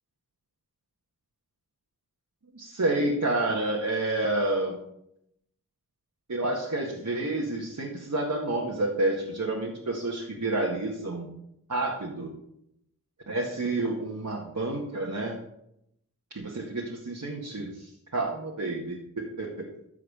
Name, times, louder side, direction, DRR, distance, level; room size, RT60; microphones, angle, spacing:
voice 1, 2.5-4.8 6.3-11.3 11.7-12.3 13.3-15.4 16.3-19.7, right 2 dB, 60° right, -3 dB, 2.0 m, -29 dB
14.0 x 4.8 x 7.0 m, 0.78 s
wide cardioid pair, 45°, 34 cm